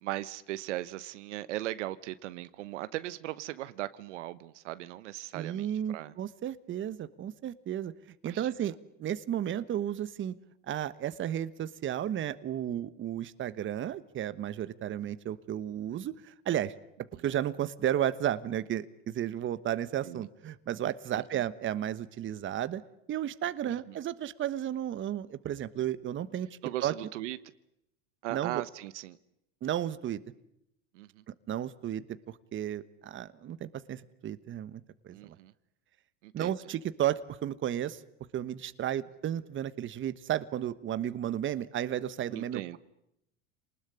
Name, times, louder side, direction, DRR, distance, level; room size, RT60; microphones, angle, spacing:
voice 1, 0.0-6.1 8.2-8.5 20.0-20.3 21.1-21.4 23.6-24.0 26.6-27.4 28.2-29.2 30.9-31.2 35.1-35.5 36.2-36.5 42.3-42.8, right 16 dB, 85° right, 1.2 m, -38 dB
voice 2, 5.3-7.9 8.2-10.3 10.7-16.7 17.2-22.8 23.1-26.9 28.3-28.6 29.6-30.2 31.5-32.2 32.5-35.3 36.3-38.0 38.3-42.8, right 11 dB, 35° right, 1.3 m, -33 dB
27.0 x 20.0 x 10.0 m
supercardioid pair, 115°, 35 cm